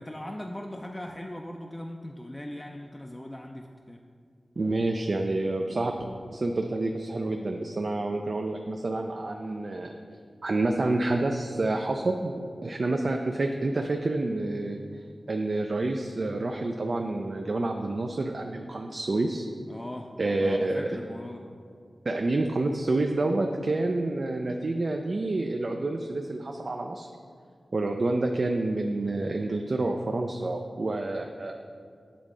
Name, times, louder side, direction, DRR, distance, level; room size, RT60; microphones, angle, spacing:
voice 1, 0.0-4.0 19.7-21.4, left 1 dB, 20° left, 1 dB, 0.4 m, -39 dB
voice 2, 4.6-5.9 6.3-10.0 10.4-19.5 20.2-20.9 22.1-27.1 27.7-31.5, right 2 dB, 60° right, 3 dB, 0.3 m, -28 dB
8.4 x 3.5 x 3.8 m, 2.3 s
cardioid pair, 50°, 0 cm